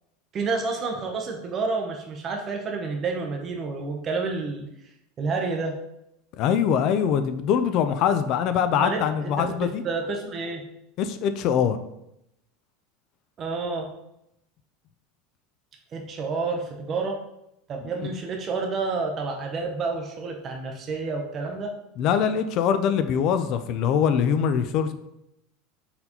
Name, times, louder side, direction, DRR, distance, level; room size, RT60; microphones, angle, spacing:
voice 1, 0.3-4.7 5.2-5.8 8.7-9.3 9.6-10.6 13.4-13.9 15.9-17.2 17.7-21.7, right 4 dB, 30° right, 2 dB, 0.6 m, -29 dB
voice 2, 6.4-9.8 11.0-11.8 22.0-24.9, left 8 dB, 45° left, 10 dB, 0.4 m, -23 dB
4.2 x 3.9 x 2.8 m, 0.81 s
supercardioid pair, 150°, 0 cm